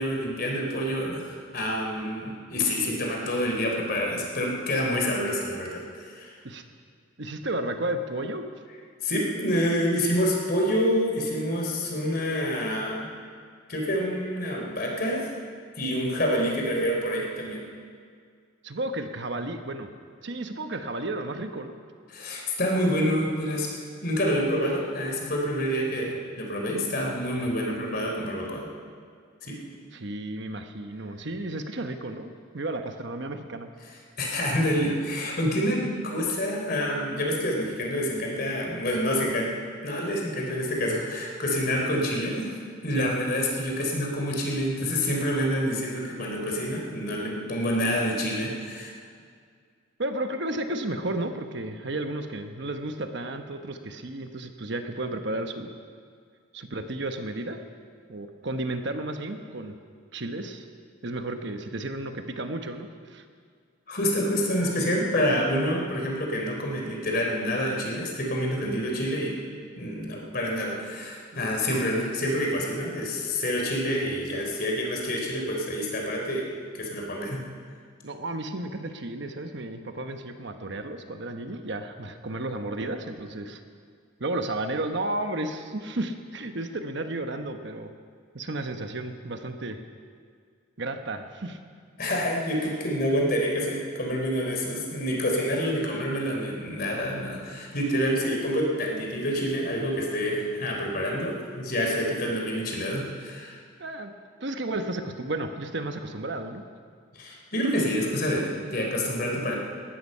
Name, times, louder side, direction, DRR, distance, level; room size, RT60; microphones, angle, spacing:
voice 1, 0.0-6.3 9.0-13.1 13.7-15.3 15.8-17.6 22.1-23.7 24.0-28.7 29.4-29.5 34.2-39.5 39.8-42.5 42.8-48.9 63.9-69.3 69.7-76.5 76.8-77.4 92.0-103.6 107.1-109.6, equal, 45° left, 0 dB, 3.4 m, -27 dB
voice 2, 7.2-8.4 16.1-16.2 18.6-19.9 20.2-21.7 29.9-33.7 41.7-41.8 42.9-43.1 50.0-55.7 56.5-57.6 58.1-59.7 60.1-60.6 61.0-63.2 71.3-71.4 78.0-83.6 84.2-87.9 88.3-89.8 90.8-91.6 103.8-104.1 104.4-106.6, right 2 dB, 55° right, 6 dB, 1.1 m, -33 dB
18.5 x 13.5 x 5.6 m, 2.1 s
head